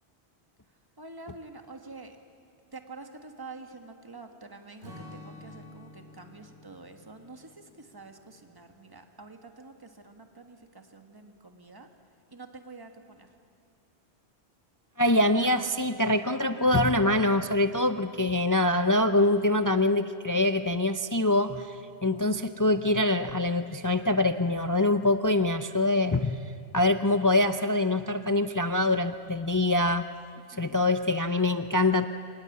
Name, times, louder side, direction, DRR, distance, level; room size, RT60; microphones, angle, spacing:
voice 1, 1.0-2.2 2.7-11.9 12.3-13.3 30.5-30.8, right 3 dB, 20° right, 5 dB, 1.5 m, -47 dB
Strum, 4.8-9.5, left 2 dB, 60° right, 2.5 m, -50 dB
voice 2, 15.0-26.4 26.7-30.1 30.5-32.1, left 2 dB, 30° left, 9 dB, 0.3 m, -24 dB
26.0 x 18.5 x 8.5 m, 2.3 s
omnidirectional pair, 1.1 m